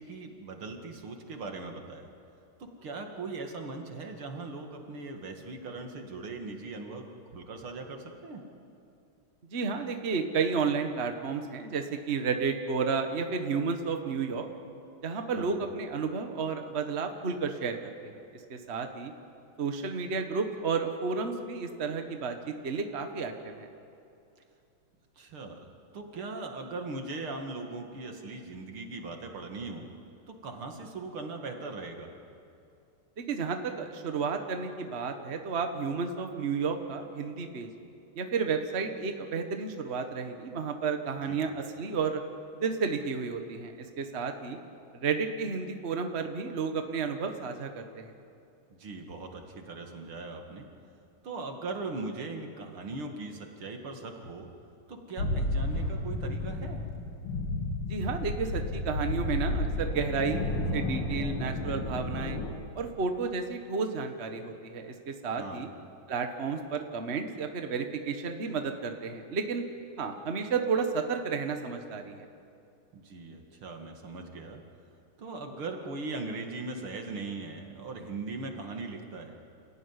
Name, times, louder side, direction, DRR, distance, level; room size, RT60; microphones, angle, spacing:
voice 1, 0.0-2.1 2.6-7.1 7.3-8.4 15.3-15.6 25.2-29.9 30.3-32.1 41.3-41.4 48.7-50.7 51.2-54.5 54.9-56.8 65.4-65.7 72.9-74.6 75.2-79.4, right 3 dB, 75° right, 3 dB, 3.0 m, -39 dB
voice 2, 9.5-14.5 15.0-18.1 18.5-19.1 19.6-23.7 33.2-37.7 38.1-42.2 42.6-44.6 44.9-48.1 57.9-60.4 60.7-62.4 62.7-65.7 66.1-69.6 70.0-72.3, right 5 dB, 35° right, 5 dB, 1.4 m, -32 dB
sound 1, 55.2-62.5, left 1 dB, 85° left, 2.9 m, -32 dB
28.5 x 15.5 x 9.8 m, 2.6 s
omnidirectional pair, 2.4 m